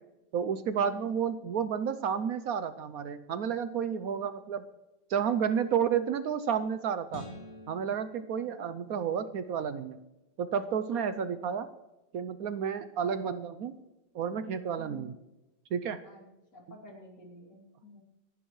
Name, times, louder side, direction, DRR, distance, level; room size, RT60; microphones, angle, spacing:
voice 1, 0.3-4.6 5.1-7.2 7.7-10.0 10.4-11.7 12.1-13.8 14.1-15.1 15.7-16.0, right 7 dB, 70° right, 11 dB, 0.8 m, -31 dB
sound 1, 7.1-9.5, left 1 dB, 80° left, 3.5 m, -49 dB
voice 2, 10.9-11.3 14.8-15.1 16.0-16.3 16.5-18.0, left 2 dB, 60° left, -1 dB, 3.6 m, -51 dB
26.0 x 11.0 x 3.1 m, 1.0 s
omnidirectional pair, 2.1 m